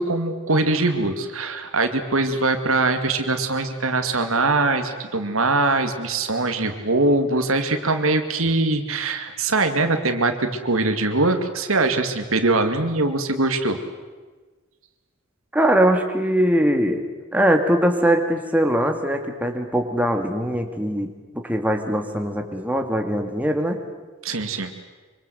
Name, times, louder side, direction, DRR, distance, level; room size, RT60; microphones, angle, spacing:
voice 1, 0.0-13.8 24.2-24.7, right 2 dB, 75° right, 7 dB, 2.4 m, -22 dB
voice 2, 15.5-17.1 17.3-23.8, right 1 dB, 5° right, 3 dB, 2.1 m, -21 dB
25.5 x 25.0 x 7.8 m, 1.3 s
head